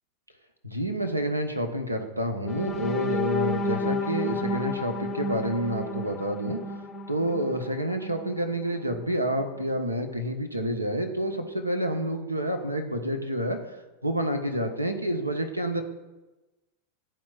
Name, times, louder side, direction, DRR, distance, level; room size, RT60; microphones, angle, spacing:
voice 1, 0.6-6.6 7.1-13.6 14.0-15.8, right 1 dB, 85° right, 6 dB, 0.7 m, -28 dB
sound 1, 2.4-8.4 8.9-9.0 9.4-9.6, left 2 dB, 20° left, 0.5 m, -31 dB
11.0 x 4.3 x 2.4 m, 1.1 s
figure-of-eight pair, 90°, 0 cm